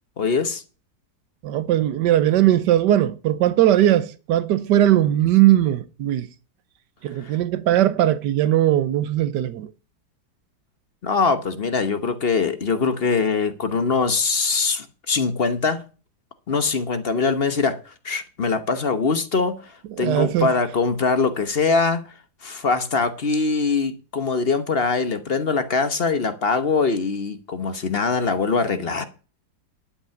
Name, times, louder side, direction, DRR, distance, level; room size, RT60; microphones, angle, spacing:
voice 1, 0.2-0.6 7.2-7.3 11.0-15.8 16.5-22.0 22.4-29.0, left 4 dB, 40° left, 1.1 m, -22 dB
voice 2, 1.4-6.3 7.0-9.7 20.0-20.5, right 13 dB, 90° right, 1.4 m, -19 dB
11.5 x 5.4 x 7.0 m
omnidirectional pair, 1.8 m